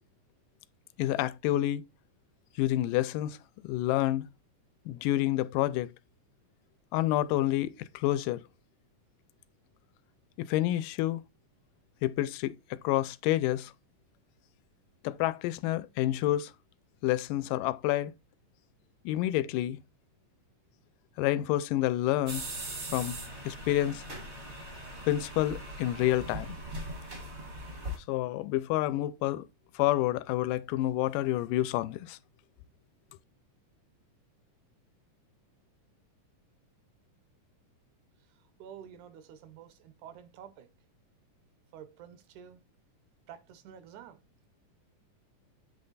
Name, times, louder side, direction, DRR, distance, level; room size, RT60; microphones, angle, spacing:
voice 1, 1.0-1.8 2.6-3.4 3.6-4.3 4.9-5.9 6.9-8.4 10.4-11.2 12.0-13.7 15.0-16.5 17.0-18.1 19.1-19.8 21.2-22.5 22.9-23.1 23.5-24.0 25.1-26.6 28.1-29.5 29.8-32.2, left 14 dB, 85° left, 2.2 m, -28 dB
sound 1, 22.3-28.0, right 1 dB, 45° right, 0.8 m, -40 dB
voice 2, 38.6-40.7 41.7-42.6 43.3-44.2, right 9 dB, 75° right, 2.0 m, -49 dB
8.1 x 3.2 x 3.9 m
omnidirectional pair, 3.7 m